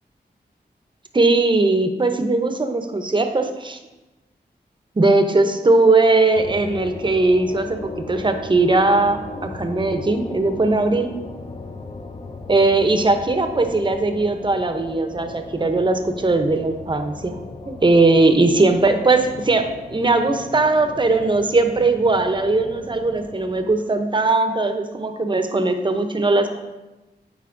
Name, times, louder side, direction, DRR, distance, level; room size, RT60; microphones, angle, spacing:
voice 1, 1.1-3.8 5.0-11.1 12.5-17.4 17.7-26.5, right 3 dB, 25° right, 6 dB, 0.6 m, -19 dB
sound 1, 6.3-23.7, left 3 dB, 30° left, 0.5 m, -37 dB
9.3 x 4.1 x 2.6 m, 1.1 s
cardioid pair, 60°, 17 cm